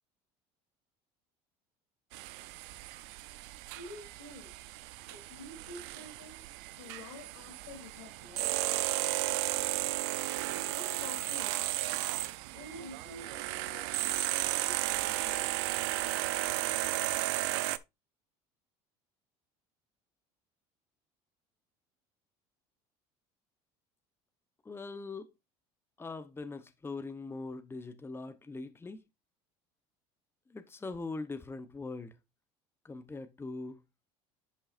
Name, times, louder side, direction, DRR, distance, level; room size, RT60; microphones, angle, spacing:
sound 1, 2.1-17.8, right 18 dB, 80° right, 0.5 m, -34 dB
voice 1, 3.7-4.6 5.1-6.4 6.8-8.5 10.7-11.6 12.5-15.5, left 2 dB, 90° left, 3.1 m, -49 dB
voice 2, 24.6-25.3 26.0-29.0 30.5-32.1 32.8-33.8, left 3 dB, 15° left, 1.0 m, -41 dB
10.5 x 5.4 x 2.5 m
supercardioid pair, 90°, 14 cm